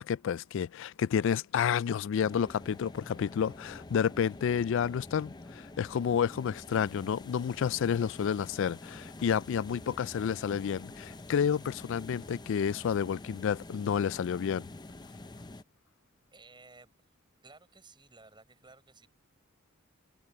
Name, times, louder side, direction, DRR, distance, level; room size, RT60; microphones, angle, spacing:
voice 1, 0.0-14.7, left 7 dB, 65° left, 0.3 m, -30 dB
sound 1, 2.2-15.6, left 2 dB, 20° left, 0.7 m, -47 dB
voice 2, 16.3-16.9 17.4-19.1, right 3 dB, 25° right, 7.2 m, -56 dB
head